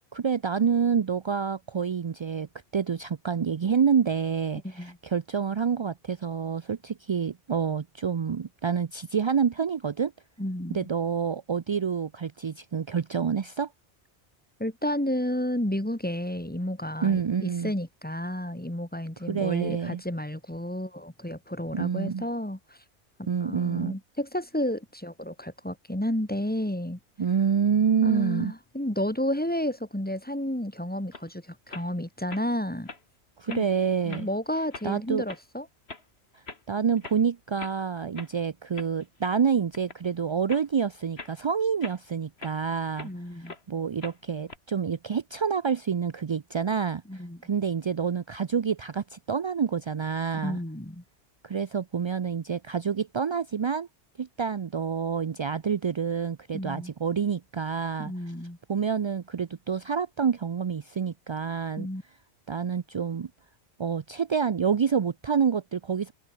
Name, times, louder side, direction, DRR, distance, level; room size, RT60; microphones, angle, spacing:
voice 1, 0.1-2.5 2.7-10.1 10.7-13.7 17.0-17.7 19.3-20.0 21.7-22.2 23.3-23.9 27.2-28.5 33.4-34.3 34.8-35.2 36.7-43.1 43.7-50.6 51.4-53.9 54.2-58.1 58.7-61.9 62.5-63.3 63.8-66.1, right 6 dB, 50° right, 0.3 m, -27 dB
voice 2, 4.6-5.0 10.4-10.8 14.6-22.8 23.4-27.0 28.0-32.9 33.5-33.6 34.0-35.7 43.0-43.5 47.1-47.4 50.4-51.0 56.5-56.9 58.0-58.6 61.8-62.0, left 1 dB, 10° left, 1.9 m, -31 dB
sound 1, 31.1-31.3 31.7-31.9 32.3-32.5 32.9-33.0 33.5-33.8 34.1-34.3 34.7-34.9 35.3-35.4 35.9-36.0 36.5-36.6 37.0-37.2 37.6-37.8 38.2-38.3 38.7-39.4 39.7-40.1 40.5-40.7 41.2-41.4 41.8-43.1 43.4-43.6 44.0-44.6, left 3 dB, 65° left, 2.9 m, -42 dB
omnidirectional pair, 1.1 m